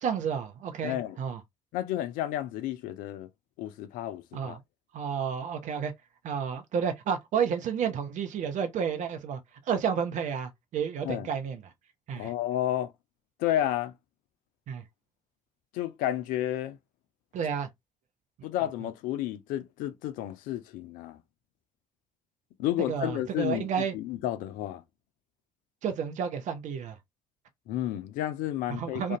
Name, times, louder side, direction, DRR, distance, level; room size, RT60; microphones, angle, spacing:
voice 1, 0.0-1.4 4.3-4.6 4.9-5.9 6.2-9.4 9.7-11.6 12.1-12.3 14.7-14.8 17.3-17.7 22.9-24.0 25.8-27.0 28.7-29.2, right 7 dB, 55° right, 0.6 m, -31 dB
voice 2, 0.8-1.2 1.7-3.3 3.6-4.6 11.0-11.3 12.1-12.9 13.4-13.9 15.7-16.8 18.4-21.2 22.6-24.8 27.7-29.2, left 13 dB, 65° left, 0.4 m, -31 dB
2.4 x 2.2 x 2.6 m
figure-of-eight pair, 45°, 15 cm